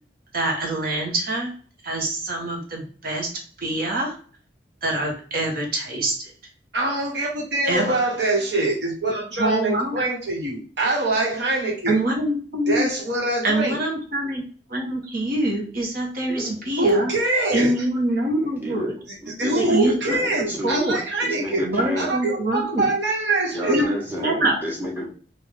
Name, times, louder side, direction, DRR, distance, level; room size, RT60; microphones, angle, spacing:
voice 1, 0.3-1.5 1.8-3.3 3.6-4.2 4.8-6.3 7.6-8.0 9.4-10.0 11.9-12.9 13.4-14.4 14.7-17.1 17.5-18.9 19.5-21.0 21.6-22.9 23.7-24.6, right 1 dB, 55° right, 1 dB, 1.3 m, -25 dB
voice 2, 6.7-12.0 12.7-13.7 16.8-17.7 19.4-21.6 22.0-23.9, right 2 dB, 75° right, -2 dB, 1.4 m, -24 dB
voice 3, 16.3-16.6 18.4-20.8 21.2-22.1 23.5-25.1, equal, 10° right, -2 dB, 1.3 m, -31 dB
3.6 x 2.6 x 3.5 m, 0.43 s
head